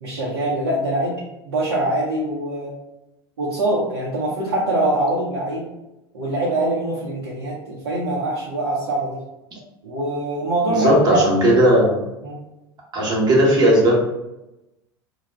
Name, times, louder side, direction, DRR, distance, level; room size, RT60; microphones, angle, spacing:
voice 1, 0.0-2.7 3.4-5.7 6.1-9.2 9.8-11.2 11.7-11.8 12.2-12.4, right 1 dB, 65° right, -6 dB, 0.6 m, -23 dB
voice 2, 10.7-11.9 12.9-14.0, right 1 dB, 30° right, -3 dB, 0.9 m, -16 dB
2.2 x 2.0 x 3.3 m, 0.94 s
figure-of-eight pair, 80°, 13 cm